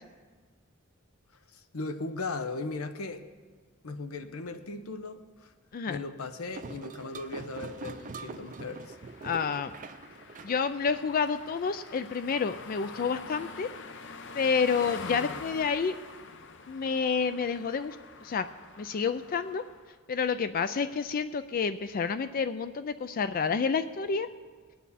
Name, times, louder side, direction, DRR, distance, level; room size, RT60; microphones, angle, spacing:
voice 1, 1.5-3.2 3.8-5.5 5.9-9.0, left 3 dB, 85° left, 10 dB, 0.9 m, -37 dB
sound 1, 6.5-11.4, right 3 dB, 35° right, 0.5 m, -44 dB
sound 2, 6.9-19.9, left 4 dB, 60° left, 0.7 m, -46 dB
voice 2, 9.2-9.7 10.4-13.7 14.3-15.9 16.7-18.0 18.2-18.5 18.8-19.6 20.1-24.3, left 5 dB, 40° left, 11 dB, 0.3 m, -29 dB
20.0 x 9.3 x 4.2 m, 1.5 s
head